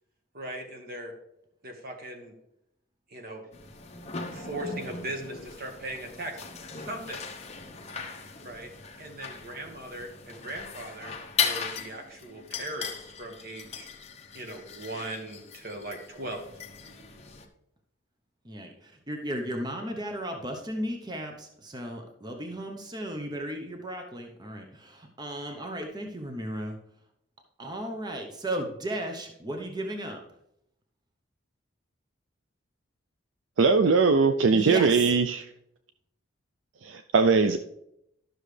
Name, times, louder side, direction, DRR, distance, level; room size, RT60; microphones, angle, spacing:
voice 1, 0.3-1.1 1.6-2.3 3.1-3.5 4.3-6.4 6.8-7.2 8.4-8.7 9.0-13.9 14.3-16.4, right 1 dB, 50° right, 3 dB, 1.5 m, -39 dB
sound 1, 3.5-17.5, left 5 dB, 30° left, 0.8 m, -38 dB
voice 2, 18.4-26.8 27.6-30.2 34.5-35.0, right 1 dB, 20° right, 3 dB, 0.8 m, -35 dB
voice 3, 33.6-35.4 36.8-37.6, right 4 dB, 70° right, 8 dB, 0.4 m, -21 dB
12.0 x 6.3 x 3.3 m, 0.79 s
head